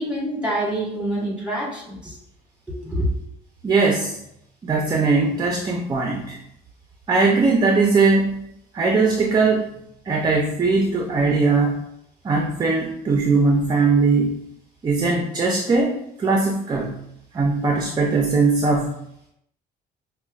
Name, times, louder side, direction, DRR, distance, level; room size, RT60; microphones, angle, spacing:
voice 1, 0.0-2.2 2.7-3.1, right 1 dB, 5° right, -3 dB, 1.2 m, -26 dB
voice 2, 3.6-4.2 4.6-6.4 7.1-8.4 8.7-9.7 10.1-11.8 12.2-14.4 14.8-17.0 17.3-18.9, right 3 dB, 25° right, 1 dB, 0.4 m, -20 dB
5.1 x 2.1 x 2.3 m, 0.76 s
cardioid pair, 110°, 17 cm